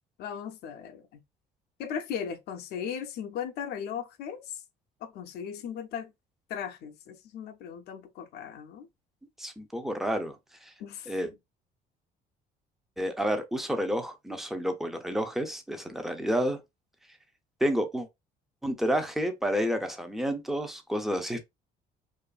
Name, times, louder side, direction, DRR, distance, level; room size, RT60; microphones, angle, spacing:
voice 1, 0.2-1.2 1.8-4.6 5.0-6.1 6.5-8.9 10.8-11.2, left 8 dB, 70° left, 0.5 m, -37 dB
voice 2, 9.4-10.4 11.1-11.3 13.0-16.6 17.6-18.1 18.6-21.4, equal, ahead, 0.5 m, -30 dB
2.6 x 2.4 x 2.3 m
cardioid pair, 110°, 17 cm